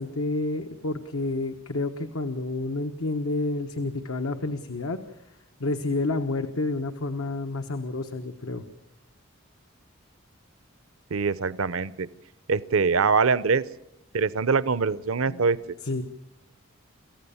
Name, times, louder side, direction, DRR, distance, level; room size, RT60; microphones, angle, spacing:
voice 1, 0.0-5.0 5.6-8.6 15.3-15.4 15.8-16.0, left 2 dB, 90° left, 6 dB, 1.2 m, -29 dB
voice 2, 11.1-12.1 12.5-13.6 14.1-15.6, right 5 dB, 80° right, 17 dB, 0.7 m, -23 dB
26.5 x 14.5 x 7.1 m, 0.93 s
head